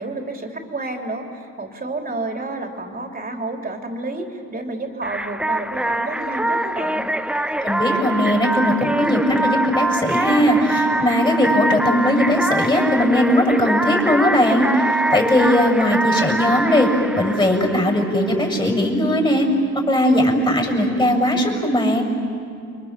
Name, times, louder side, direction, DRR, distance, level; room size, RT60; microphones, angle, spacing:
voice 1, 0.0-7.1, right 2 dB, 30° right, 3 dB, 3.5 m, -30 dB
sound 1, 5.0-18.5, right 1 dB, 5° right, 0.6 m, -23 dB
voice 2, 7.6-19.5 19.9-22.0, left 1 dB, 15° left, 2 dB, 6.9 m, -19 dB
30.0 x 24.5 x 7.5 m, 2.5 s
cardioid pair, 90°, 30 cm